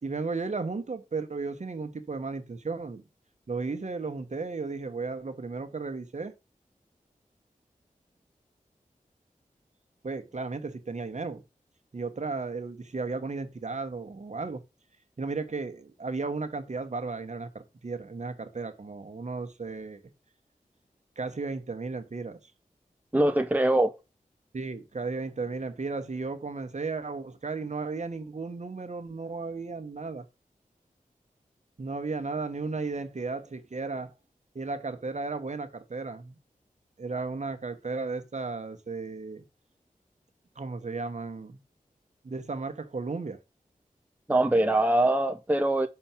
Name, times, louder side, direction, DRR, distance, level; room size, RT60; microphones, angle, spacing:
voice 1, 0.0-3.0 3.5-6.3 10.0-11.4 11.9-14.6 15.2-20.0 21.2-22.4 24.5-30.2 31.8-34.1 34.5-36.4 37.0-39.4 40.6-41.6 42.2-43.4, right 4 dB, 55° right, 1.2 m, -34 dB
voice 2, 23.1-23.9 44.3-45.9, right 1 dB, 10° right, 0.6 m, -23 dB
5.7 x 4.4 x 5.8 m
wide cardioid pair, 55°, 15 cm